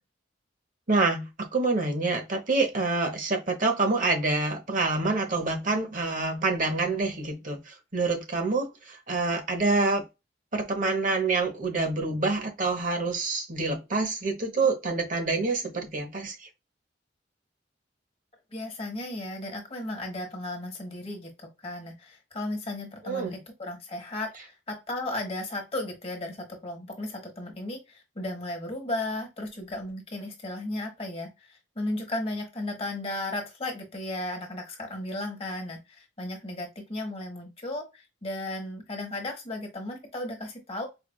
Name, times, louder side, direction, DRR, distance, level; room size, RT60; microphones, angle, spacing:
voice 1, 0.9-10.0 10.5-16.5 23.0-23.3, right 3 dB, 45° right, 0.9 m, -27 dB
voice 2, 18.5-40.9, left 1 dB, 35° left, 1.0 m, -35 dB
4.6 x 2.4 x 2.2 m
head